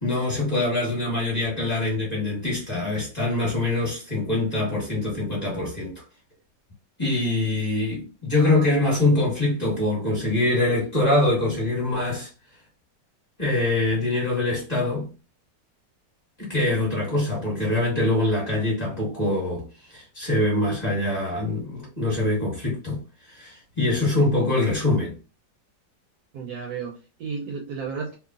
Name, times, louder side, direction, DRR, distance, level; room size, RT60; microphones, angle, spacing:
voice 1, 0.0-6.0 7.0-12.3 13.4-15.1 16.4-23.0 23.3-25.2, left 2 dB, 25° left, 1.2 m, -24 dB
voice 2, 26.3-28.2, right 5 dB, 70° right, 1.0 m, -33 dB
3.0 x 2.2 x 2.3 m
omnidirectional pair, 1.9 m